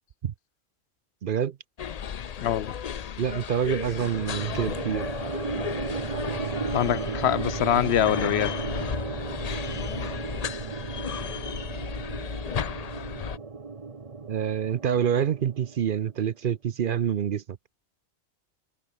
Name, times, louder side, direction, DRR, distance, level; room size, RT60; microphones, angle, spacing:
voice 1, 1.2-1.6 3.2-5.1 14.3-17.4, right 8 dB, 55° right, 0.8 m, -27 dB
sound 1, 1.8-13.4, left 8 dB, 45° left, 0.6 m, -34 dB
voice 2, 2.4-2.8 6.7-8.5, left 11 dB, 75° left, 0.9 m, -24 dB
Thump thud, 2.5-3.0 4.4-4.9 6.7-7.3, right 2 dB, 80° right, 5.6 m, -57 dB
sound 2, 3.9-16.1, right 4 dB, 35° right, 1.1 m, -35 dB
omnidirectional pair, 1.1 m